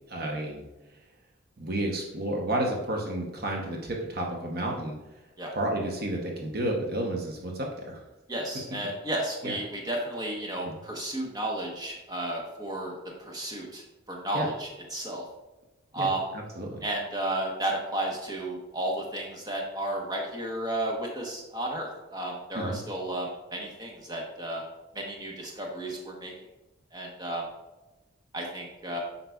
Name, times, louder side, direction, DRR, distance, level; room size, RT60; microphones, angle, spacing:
voice 1, 0.1-0.6 1.6-5.0 5.5-8.0 9.4-9.6 10.6-10.8 14.3-14.5 16.0-16.1 16.3-16.8 22.5-22.8, right 1 dB, 50° right, 0 dB, 0.9 m, -31 dB
voice 2, 8.3-13.8 14.1-15.2 15.9-16.3 16.8-24.6 24.9-26.3 26.9-27.4 28.3-29.0, right 1 dB, 20° right, -1 dB, 1.0 m, -33 dB
7.8 x 5.7 x 2.3 m, 1.0 s
head